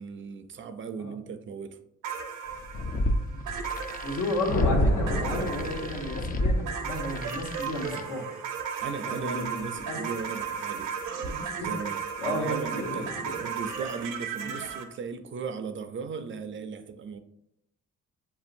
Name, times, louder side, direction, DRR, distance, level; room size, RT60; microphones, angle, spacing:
voice 1, 0.0-1.8 8.8-11.0 11.6-13.1 13.4-17.2, right 5 dB, 40° right, 10 dB, 0.4 m, -37 dB
sound 1, 2.0-14.8, right 6 dB, 85° right, 0.7 m, -35 dB
sound 2, 2.5-8.0, left 1 dB, 30° left, 0.4 m, -31 dB
voice 2, 4.0-8.2 9.1-10.0 11.2-11.7 12.2-13.4 14.4-14.6, left 1 dB, 80° left, 0 dB, 1.2 m, -33 dB
sound 3, 4.5-6.4, left 1 dB, 55° left, 1.4 m, -29 dB
6.9 x 2.7 x 2.5 m, 0.80 s
cardioid pair, 90°, 30 cm